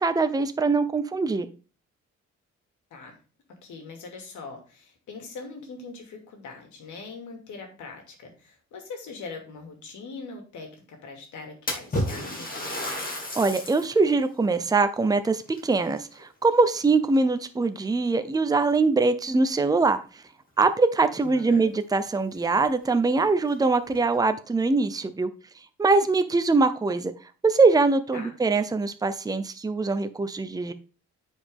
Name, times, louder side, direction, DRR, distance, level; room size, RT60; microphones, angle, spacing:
voice 1, 0.0-1.5 13.3-20.0 20.6-25.3 25.8-27.1 27.4-30.7, right 3 dB, 10° right, 0.7 m, -23 dB
voice 2, 3.5-12.7 21.2-21.7 28.1-28.3, left 4 dB, 75° left, 2.7 m, -42 dB
Splash splatter, 11.7-14.0 14.5-14.6 15.5-16.5 16.9-17.3 18.1-18.2 18.7-18.8 21.0-21.1 21.4-21.5 22.1-22.2 22.6-22.7 23.4-24.0, left 1 dB, 30° left, 2.6 m, -32 dB
9.4 x 5.1 x 3.6 m
cardioid pair, 90°, 30 cm